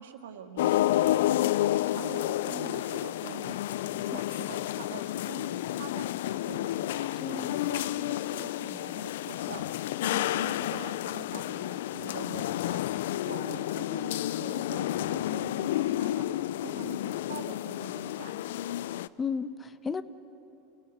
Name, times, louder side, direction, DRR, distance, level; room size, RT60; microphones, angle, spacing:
voice 1, 0.0-3.6 3.9-7.1 7.5-9.6 10.0-18.3, right 8 dB, 85° right, 6 dB, 1.8 m, -45 dB
sound 1, 0.6-19.1, left 14 dB, 75° left, 0.4 m, -30 dB
voice 2, 7.2-7.5 19.2-20.0, left 5 dB, 20° left, 13 dB, 0.9 m, -34 dB
28.5 x 16.5 x 7.9 m, 2.9 s
hypercardioid pair, 110°, 0 cm